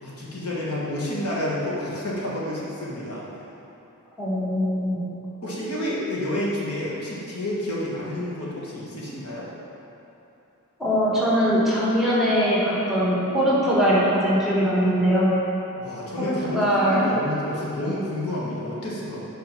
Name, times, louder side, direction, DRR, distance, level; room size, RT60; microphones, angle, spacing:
voice 1, 0.0-3.3 5.4-9.5 15.7-19.3, left 1 dB, 75° left, -6 dB, 1.6 m, -29 dB
voice 2, 4.2-5.0 10.8-15.3 16.2-17.0, equal, ahead, -8 dB, 1.4 m, -21 dB
6.0 x 4.8 x 5.8 m, 2.9 s
head